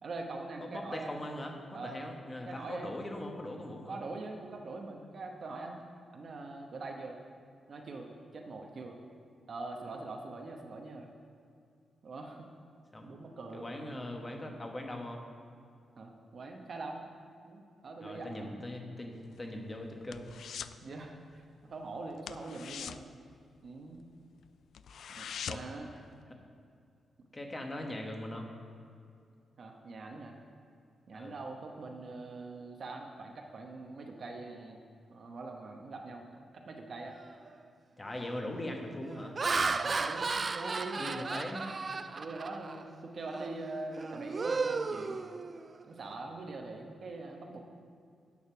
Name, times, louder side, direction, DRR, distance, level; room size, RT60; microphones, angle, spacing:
voice 1, 0.0-1.2 1.7-2.0 2.5-3.0 3.9-5.8 6.1-7.2 7.7-9.0 9.5-11.1 12.0-12.5 13.0-13.7 16.0-17.1 17.4-18.6 20.8-23.1 23.6-24.0 25.1-25.9 29.6-30.3 31.1-34.8 35.1-36.3 36.5-37.2 39.7-41.5 42.1-45.2 45.8-47.6, right 3 dB, 50° right, 2 dB, 1.0 m, -43 dB
voice 2, 0.6-1.5 1.8-4.0 12.9-13.1 13.5-15.2 18.0-20.4 25.5-25.6 27.3-28.5 31.1-31.4 38.0-39.4 40.9-41.7, left 1 dB, 20° left, 2 dB, 1.2 m, -40 dB
sound 1, 19.2-20.8 21.1-21.4 21.7-21.8 22.2-24.1 24.4-24.5 24.7-25.9 26.2-26.3, left 8 dB, 70° left, 0.3 m, -43 dB
Laughter, 37.3-37.5 38.1-38.4 39.0-42.8 43.3-43.5 43.9-45.8, right 4 dB, 35° right, 0.3 m, -34 dB
9.5 x 6.6 x 5.8 m, 2.4 s
wide cardioid pair, 130°, 0 cm